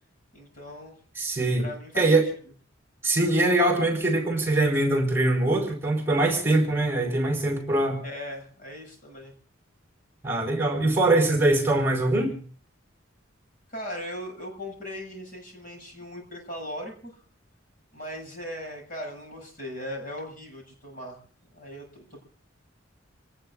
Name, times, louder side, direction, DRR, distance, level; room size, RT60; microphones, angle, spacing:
voice 1, 0.3-0.9 1.6-2.2 8.0-9.3 13.7-17.2 17.9-21.2 21.4-22.2, equal, 45° left, 0 dB, 7.6 m, -38 dB
voice 2, 1.2-1.6 2.0-2.3 3.0-8.0 10.2-12.4, right 2 dB, 10° right, 2 dB, 4.7 m, -23 dB
28.5 x 19.0 x 2.6 m, 0.42 s
head